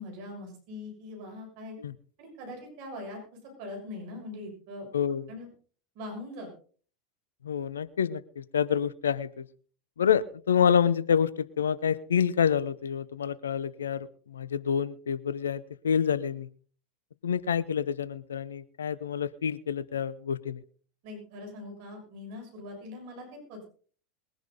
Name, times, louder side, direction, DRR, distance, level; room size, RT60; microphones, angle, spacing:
voice 1, 0.0-1.8 2.2-3.2 3.6-4.9 5.3-5.5 5.9-6.5 21.0-23.7, left 2 dB, 55° right, 2 dB, 6.3 m, -41 dB
voice 2, 4.9-5.2 7.4-9.5 10.0-16.5 17.2-20.6, left 7 dB, 75° left, 18 dB, 0.7 m, -27 dB
21.5 x 10.5 x 4.0 m, 0.44 s
figure-of-eight pair, 80°, 0 cm